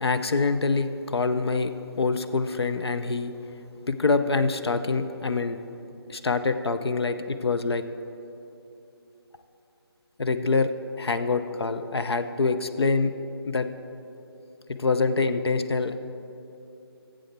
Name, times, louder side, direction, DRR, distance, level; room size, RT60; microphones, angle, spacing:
voice 1, 0.0-3.3 3.9-5.6 6.1-7.8 10.2-10.7 11.0-13.1 13.4-13.7 14.7-16.0, left 4 dB, 75° left, 9 dB, 0.6 m, -25 dB
12.5 x 7.8 x 4.6 m, 2.9 s
figure-of-eight pair, 155°, 13 cm